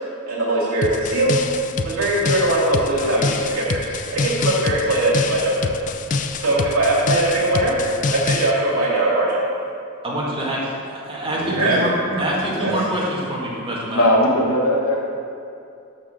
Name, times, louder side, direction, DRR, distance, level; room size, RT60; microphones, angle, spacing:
voice 1, 0.3-1.3 1.8-5.7 6.4-7.8 8.0-9.4 11.2-12.7, right 1 dB, 70° right, -5 dB, 2.2 m, -21 dB
sound 1, 0.8-8.5, left 4 dB, 35° left, 0.3 m, -26 dB
voice 2, 10.0-10.7 11.1-11.9 12.2-14.0, right 1 dB, 25° right, -5 dB, 1.8 m, -25 dB
voice 3, 13.9-15.0, left 1 dB, 70° left, -2 dB, 1.5 m, -18 dB
6.6 x 6.0 x 6.3 m, 2.5 s
head